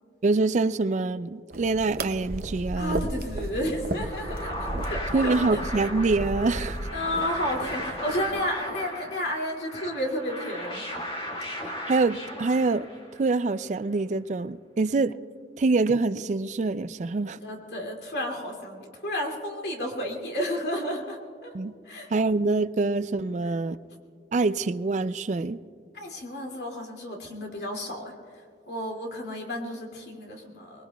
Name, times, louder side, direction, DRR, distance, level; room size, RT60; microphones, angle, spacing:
voice 1, 0.2-3.1 5.1-6.8 11.9-12.9 13.2-15.2 15.6-17.4 21.5-21.7 22.1-23.8 24.3-25.6, right 3 dB, 40° right, 14 dB, 0.3 m, -25 dB
sound 1, 1.5-8.5, right 1 dB, 55° right, 0.7 m, -35 dB
voice 2, 2.8-4.6 4.9-5.6 6.9-10.8 17.3-21.5 21.9-22.1 25.9-28.1 28.7-30.8, equal, 70° left, 0 dB, 2.4 m, -32 dB
sound 2, 3.9-13.3, left 1 dB, 30° left, 2.1 m, -36 dB
23.5 x 20.5 x 2.3 m, 2.3 s
head